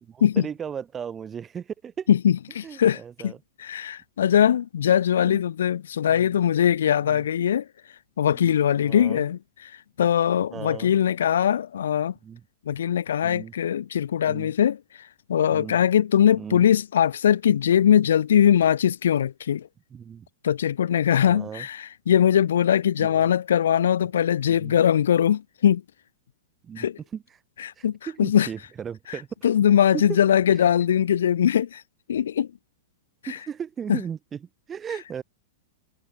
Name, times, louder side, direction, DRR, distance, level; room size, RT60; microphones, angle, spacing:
voice 1, 0.0-2.1 2.6-3.4 4.9-5.0 5.2-5.4 6.1-6.3 7.0-7.3 8.3-8.6 8.8-9.2 10.5-10.9 12.2-12.4 13.2-13.5 14.3-14.5 15.5-15.8 16.3-16.7 19.9-20.3 21.3-21.7 23.0-23.3 24.6-24.8 26.6-26.9 27.1-27.2 27.8-29.3 29.9-30.2 30.5-30.6 33.3-35.2, right 7 dB, 20° right, 1.2 m, -36 dB
voice 2, 2.1-3.3 3.6-7.7 8.2-9.7 10.0-12.1 12.7-14.8 15.3-19.7 20.4-25.8 26.8-27.0 27.6-28.5 29.4-31.8 32.1-32.5 33.9-34.0, left 9 dB, 75° left, 0.4 m, -21 dB
hypercardioid pair, 110°, 0 cm